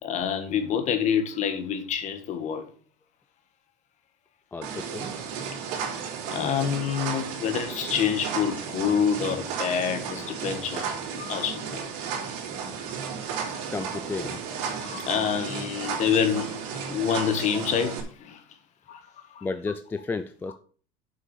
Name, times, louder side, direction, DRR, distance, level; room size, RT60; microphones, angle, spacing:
voice 1, 0.0-2.7 6.3-11.8 14.8-16.6 16.9-18.4 18.9-19.0, left 8 dB, 35° left, 1.6 m, -27 dB
voice 2, 4.5-5.1 12.5-12.6 13.7-14.4 19.4-20.5, left 4 dB, 10° left, 0.3 m, -33 dB
sound 1, 4.6-18.0, right 6 dB, 80° right, 3.4 m, -34 dB
7.5 x 6.3 x 6.8 m
cardioid pair, 160°, 20 cm